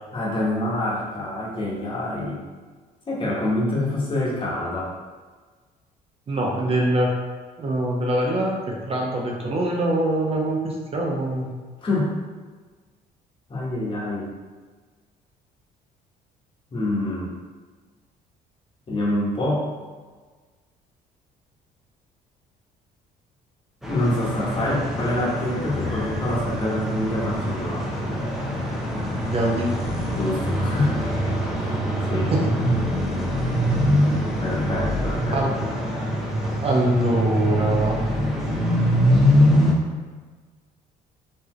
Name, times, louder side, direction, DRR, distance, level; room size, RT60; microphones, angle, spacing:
voice 1, 0.1-2.4 3.1-4.9 11.8-12.2 13.5-14.3 16.7-17.3 18.9-19.7 23.8-27.9 30.1-31.1 31.5-31.8 32.1-32.3 34.4-35.4, left 1 dB, 30° left, -5 dB, 1.4 m, -26 dB
voice 2, 6.3-7.1 7.6-11.5 29.2-29.7 32.3-32.4 35.3-35.5 36.6-38.0, right 1 dB, 35° right, -1 dB, 0.7 m, -23 dB
sound 1, 23.8-39.7, equal, ahead, 0.8 m, -24 dB
4.2 x 3.3 x 3.1 m, 1.4 s
cardioid pair, 110°, 17 cm